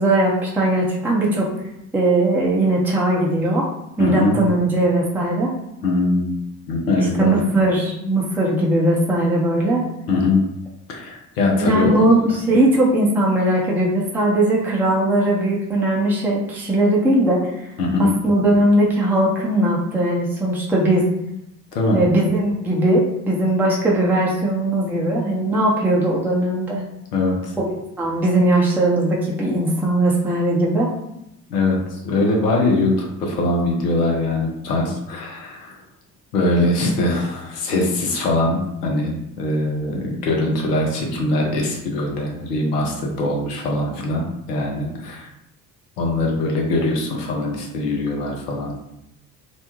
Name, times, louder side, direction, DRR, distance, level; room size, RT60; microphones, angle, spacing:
voice 1, 0.0-1.5 1.9-3.6 4.0-5.5 7.2-9.8 11.6-17.7 18.2-21.0 21.9-26.8 27.6-30.9, right 1 dB, 5° right, -4 dB, 0.6 m, -19 dB
voice 2, 4.0-4.4 5.8-6.4 6.7-7.3 10.1-10.5 10.9-12.4 17.8-18.1 21.7-22.0 27.1-27.5 31.5-35.8 36.3-45.3 46.0-48.7, left 2 dB, 90° left, 0 dB, 0.6 m, -22 dB
2.5 x 2.1 x 2.9 m, 0.84 s
hypercardioid pair, 55°, 46 cm